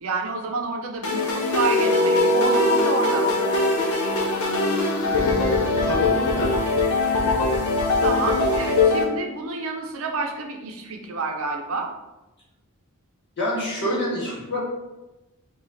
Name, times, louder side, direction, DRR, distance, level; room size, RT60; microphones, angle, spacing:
voice 1, 0.0-3.4 8.0-11.9, right 3 dB, 65° right, 3 dB, 0.6 m, -29 dB
sound 1, 1.0-9.0, left 3 dB, 75° left, 0.9 m, -22 dB
sound 2, 1.6-6.4, equal, 5° left, 1.1 m, -25 dB
voice 2, 5.8-6.5 13.4-14.6, left 1 dB, 50° left, -4 dB, 1.4 m, -27 dB
4.9 x 2.4 x 3.9 m, 1.0 s
head